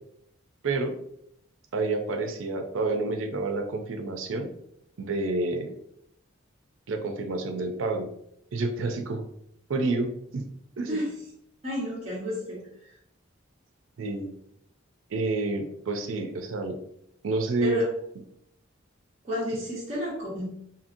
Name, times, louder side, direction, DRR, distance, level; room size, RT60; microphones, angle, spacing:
voice 1, 1.7-4.5 5.0-5.7 6.9-8.1 8.5-9.2 9.7-10.5 10.8-11.0 14.0-14.3 15.1-16.8 17.2-17.8, right 2 dB, 85° right, 5 dB, 0.5 m, -29 dB
voice 2, 11.6-12.9 17.6-17.9 19.2-20.5, equal, 30° right, -8 dB, 0.9 m, -31 dB
2.8 x 2.8 x 2.6 m, 0.73 s
head